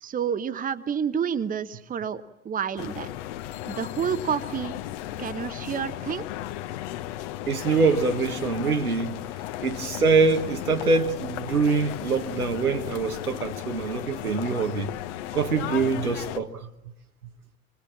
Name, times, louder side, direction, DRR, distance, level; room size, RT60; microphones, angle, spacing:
voice 1, 0.0-3.1 3.7-4.7 5.2-6.2, right 7 dB, 20° right, 1.0 m, -29 dB
sound 1, 2.8-16.4, left 13 dB, 55° left, 1.3 m, -35 dB
voice 2, 7.5-9.2 9.6-14.9 15.3-16.7, right 4 dB, 85° right, 1.6 m, -24 dB
26.5 x 21.0 x 7.3 m
figure-of-eight pair, 80°, 43 cm